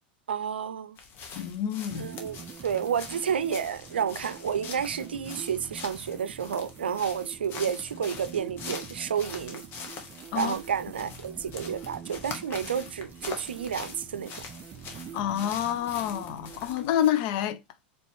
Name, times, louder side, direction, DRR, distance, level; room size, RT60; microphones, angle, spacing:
voice 1, 0.3-1.0 1.9-9.6 10.3-14.4, right 7 dB, 90° right, 0.4 m, -31 dB
sound 1, 1.0-17.1, left 5 dB, 40° left, 1.1 m, -44 dB
voice 2, 1.3-2.1 10.3-10.5 15.1-17.6, left 10 dB, 55° left, 0.6 m, -28 dB
sound 2, 1.9-16.7, right 8 dB, 35° right, 0.5 m, -46 dB
4.4 x 3.0 x 3.1 m
hypercardioid pair, 100°, 5 cm